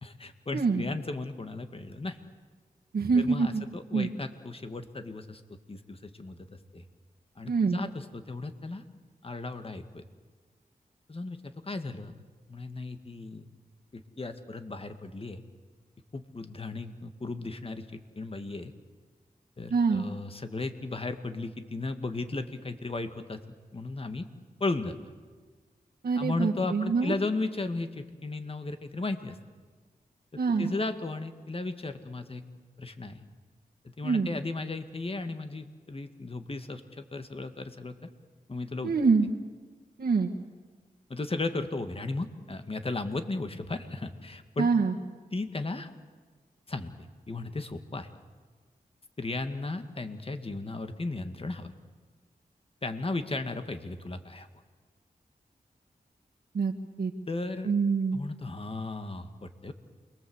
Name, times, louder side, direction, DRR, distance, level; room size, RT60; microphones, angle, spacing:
voice 1, 0.0-2.2 3.1-5.4 5.7-6.4 6.7-6.8 7.4-8.8 9.2-10.0 11.1-12.2 12.5-13.5 13.9-15.4 16.1-18.7 19.6-23.4 23.7-24.3 24.6-25.0 26.1-29.4 30.6-32.4 32.8-33.2 33.8-38.0 38.5-38.9 41.1-44.7 45.3-45.9 46.7-46.9 47.3-48.1 49.2-51.7 52.8-54.5 57.3-57.7 58.1-59.7, left 3 dB, 35° left, 8 dB, 2.0 m, -35 dB
voice 2, 2.9-3.6 3.9-4.1 7.5-7.8 19.7-20.0 26.0-27.1 30.4-30.7 34.0-34.3 38.8-39.3 40.0-40.3 44.6-44.9 56.5-56.7 57.0-57.1 57.7-58.2, right 4 dB, 85° right, -2 dB, 1.8 m, -25 dB
28.5 x 22.5 x 8.1 m, 1.5 s
wide cardioid pair, 70°, 16 cm